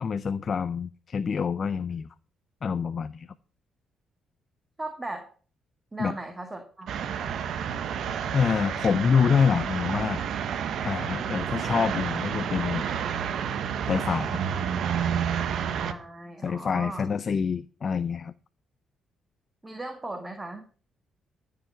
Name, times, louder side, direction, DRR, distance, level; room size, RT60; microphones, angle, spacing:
voice 1, 0.0-2.1 2.6-3.3 6.0-6.2 8.3-10.2 10.8-12.8 13.9-14.4 16.4-18.3, left 6 dB, 45° left, 13 dB, 0.5 m, -26 dB
voice 2, 4.8-5.3 5.9-6.9 15.6-17.0 19.6-20.6, right 2 dB, 20° right, 7 dB, 1.7 m, -37 dB
sound 1, 6.9-15.9, right 8 dB, 70° right, 1.1 m, -30 dB
13.0 x 6.9 x 6.3 m, 0.41 s
cardioid pair, 90°, 0 cm